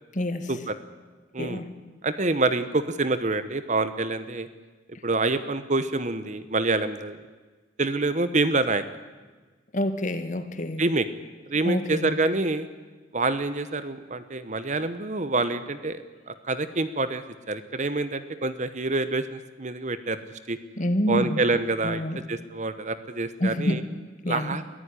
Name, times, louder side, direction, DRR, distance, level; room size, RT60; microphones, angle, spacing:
voice 1, 0.1-0.5 1.4-1.7 9.7-10.8 11.6-12.1 20.8-21.4 21.8-22.2 23.4-23.8 24.2-24.6, left 1 dB, 40° left, 9 dB, 1.6 m, -27 dB
voice 2, 2.0-4.5 5.0-7.2 7.8-8.8 10.8-11.1 11.5-12.7 13.1-20.2 20.5-20.6 21.1-22.0 22.3-23.8 24.3-24.6, right 3 dB, 40° right, 12 dB, 1.0 m, -26 dB
22.0 x 15.0 x 9.9 m, 1.3 s
head